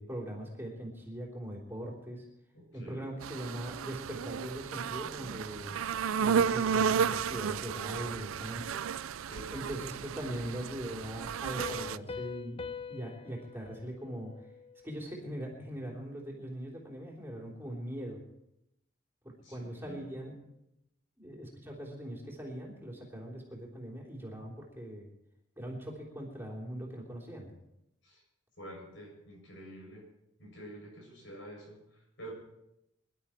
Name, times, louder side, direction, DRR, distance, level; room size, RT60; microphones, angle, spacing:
voice 1, 0.0-2.2 2.7-5.8 6.2-8.9 9.5-12.6 12.9-14.3 14.8-18.2 19.2-20.4 21.2-25.1 25.5-27.5, right 1 dB, 10° right, -2 dB, 3.3 m, -41 dB
voice 2, 2.5-3.1 9.2-9.9 19.4-20.0 28.0-28.2 28.6-30.0 30.4-32.3, right 1 dB, 65° left, -1 dB, 7.5 m, -48 dB
sound 1, 3.2-12.0, right 7 dB, 90° right, 0.4 m, -33 dB
Piano, 11.6-15.0, left 5 dB, 25° left, 0.5 m, -43 dB
23.0 x 12.0 x 4.4 m, 0.85 s
head